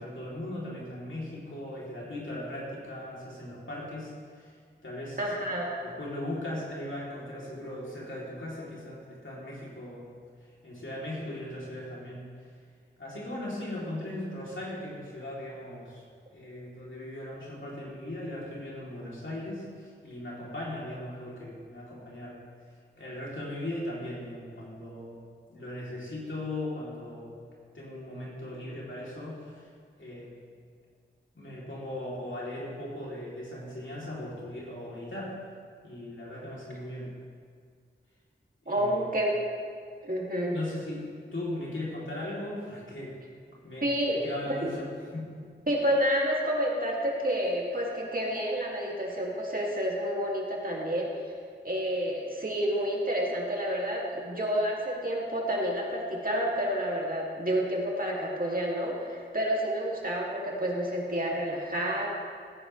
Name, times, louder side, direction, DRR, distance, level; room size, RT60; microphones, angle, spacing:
voice 1, 0.0-4.5 4.8-5.3 5.8-10.1 10.6-12.3 13.0-16.0 16.3-22.4 22.9-25.2 25.5-27.4 27.7-29.7 30.0-30.4 31.3-35.4 35.8-37.1 38.7-39.1 40.4-41.1 41.3-43.2 43.6-45.3, left 1 dB, 85° left, -6 dB, 3.2 m, -38 dB
voice 2, 5.2-5.7 38.7-39.4 40.0-40.6 43.8-44.7 45.7-51.3 51.6-62.1, equal, 45° right, -3 dB, 2.4 m, -29 dB
16.0 x 10.0 x 3.3 m, 2.1 s
wide cardioid pair, 45°, 19 cm